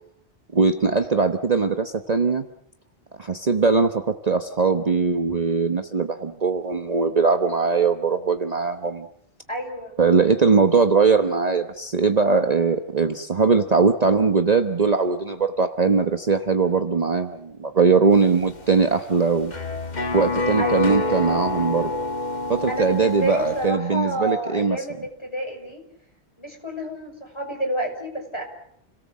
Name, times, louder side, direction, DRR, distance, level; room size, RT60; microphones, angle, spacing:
voice 1, 0.5-2.5 3.2-9.1 10.0-19.5 20.1-21.9 22.5-24.8, right 4 dB, 40° right, 7 dB, 1.1 m, -20 dB
voice 2, 9.5-9.9 20.6-20.9 22.7-25.8 26.4-28.4, right 1 dB, 25° left, 2 dB, 5.8 m, -29 dB
sound 1, 18.1-23.7, left 2 dB, 40° left, 1.5 m, -28 dB
30.0 x 18.5 x 7.4 m, 0.70 s
omnidirectional pair, 1.1 m